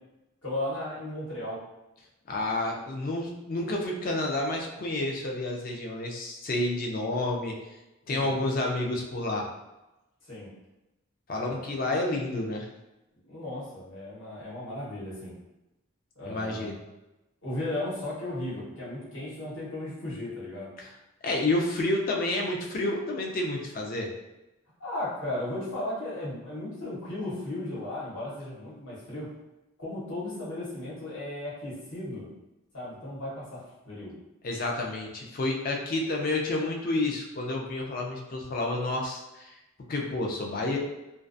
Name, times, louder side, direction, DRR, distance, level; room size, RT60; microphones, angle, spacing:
voice 1, 0.4-1.6 8.1-8.4 10.3-10.5 11.3-11.6 13.3-15.3 16.2-16.7 17.4-20.7 24.8-29.3 29.8-32.3 32.7-33.6 33.8-34.1, left 1 dB, 70° left, -8 dB, 1.1 m, -35 dB
voice 2, 2.3-7.5 8.1-9.5 11.3-12.7 16.3-16.8 20.8-20.9 21.2-24.1 34.4-39.6 39.9-40.8, left 2 dB, 40° left, 0 dB, 0.4 m, -29 dB
2.3 x 2.2 x 2.5 m, 0.98 s
head